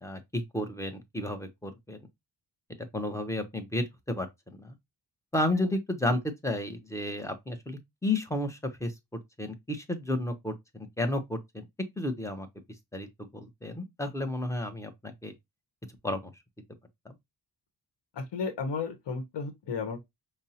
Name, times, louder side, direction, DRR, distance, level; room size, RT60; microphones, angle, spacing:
voice 1, 0.0-2.0 2.9-4.3 4.6-4.7 5.3-8.9 9.4-11.6 12.0-12.5 12.9-15.3 16.0-16.3 17.1-17.2, left 1 dB, 5° left, 0.6 m, -32 dB
voice 2, 18.2-20.1, left 5 dB, 70° left, 0.9 m, -34 dB
5.1 x 2.0 x 2.8 m
wide cardioid pair, 130°, 43 cm